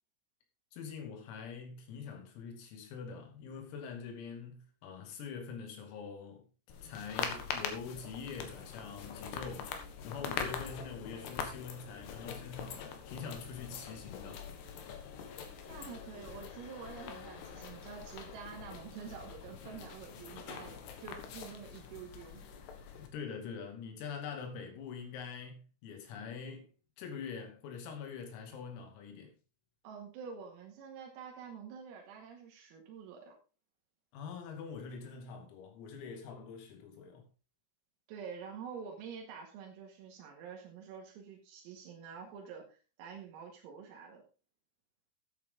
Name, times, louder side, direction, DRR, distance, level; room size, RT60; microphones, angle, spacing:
voice 1, 0.7-6.4 6.8-9.7 10.0-14.4 23.0-26.7 27.0-29.3 34.1-37.2, left 6 dB, 85° left, 5.1 m, -44 dB
sound 1, 6.7-23.1, left 7 dB, 65° left, 3.2 m, -43 dB
voice 2, 15.7-22.4 29.8-33.4 38.1-44.2, right 6 dB, 85° right, 4.6 m, -47 dB
13.5 x 9.1 x 3.9 m
omnidirectional pair, 6.0 m